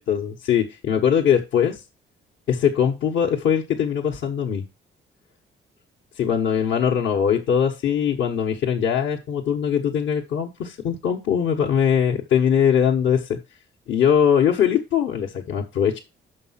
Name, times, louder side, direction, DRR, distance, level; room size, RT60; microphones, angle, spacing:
voice 1, 0.1-1.8 2.5-4.6 6.2-13.4 13.9-16.0, left 8 dB, 70° left, 0 dB, 1.2 m, -21 dB
6.6 x 5.3 x 5.7 m, 0.27 s
cardioid pair, 90°, 20 cm